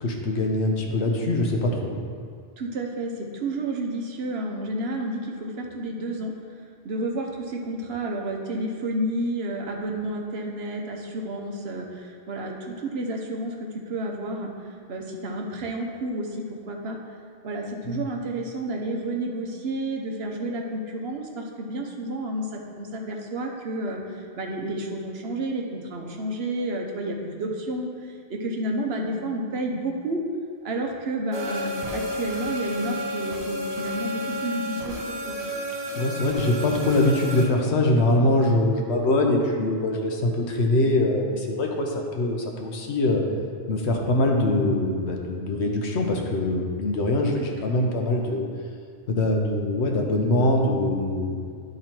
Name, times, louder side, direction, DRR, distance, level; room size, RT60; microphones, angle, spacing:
voice 1, 0.0-1.9 17.9-18.0 36.0-43.2 43.7-48.4 49.1-51.4, left 1 dB, 80° left, 1 dB, 1.2 m, -23 dB
voice 2, 2.6-14.5 14.9-17.0 17.4-30.2 30.6-35.4 47.4-47.7, right 1 dB, 70° right, 1 dB, 1.1 m, -31 dB
sound 1, 31.3-37.4, equal, 35° right, 1.0 m, -31 dB
11.0 x 3.9 x 4.4 m, 2.1 s
omnidirectional pair, 1.1 m